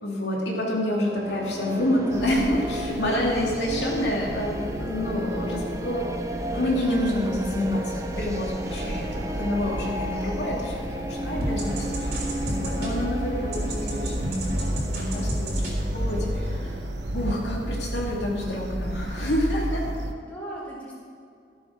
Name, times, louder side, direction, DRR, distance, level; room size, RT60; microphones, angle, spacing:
voice 1, 0.0-6.1 6.5-16.7 17.1-19.9, left 1 dB, 75° left, -3 dB, 2.6 m, -28 dB
sound 1, 0.9-19.1, equal, 15° right, 0.6 m, -35 dB
sound 2, 2.1-20.1, right 1 dB, 80° right, 0.9 m, -34 dB
voice 2, 9.1-9.7 20.3-21.0, right 1 dB, 10° left, -7 dB, 2.9 m, -40 dB
sound 3, 11.3-16.6, equal, 55° right, 3.7 m, -31 dB
14.0 x 7.7 x 6.1 m, 2.4 s
head